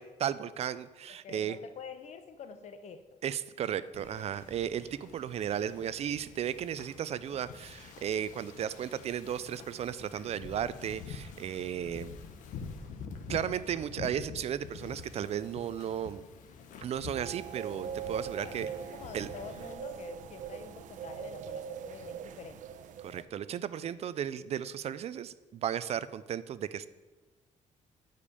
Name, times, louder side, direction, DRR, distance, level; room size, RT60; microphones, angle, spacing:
voice 1, 0.0-1.6 3.2-12.1 13.3-16.2 16.8-18.7 19.1-19.3 23.0-26.9, right 9 dB, 55° right, 16 dB, 0.5 m, -35 dB
voice 2, 1.1-3.2 18.3-18.6 18.9-22.6, left 6 dB, 60° left, 11 dB, 0.9 m, -47 dB
Wind / Ocean, 3.9-19.7, left 5 dB, 85° left, 1.2 m, -47 dB
sound 1, 17.1-23.2, right 7 dB, 80° right, 0.8 m, -42 dB
10.5 x 5.2 x 8.3 m, 1.2 s
cardioid pair, 140°, 13 cm